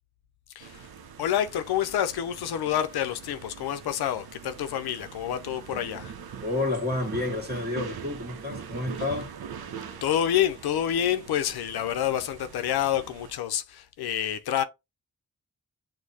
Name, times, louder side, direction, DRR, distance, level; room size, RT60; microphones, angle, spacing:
voice 1, 0.6-0.9 1.2-6.1 10.0-14.6, left 10 dB, 85° left, 0.5 m, -28 dB
sound 1, 0.6-13.3, right 7 dB, 75° right, 0.7 m, -42 dB
voice 2, 6.4-9.3, left 2 dB, 25° right, 1.5 m, -30 dB
6.3 x 2.2 x 2.7 m
supercardioid pair, 40°, 37 cm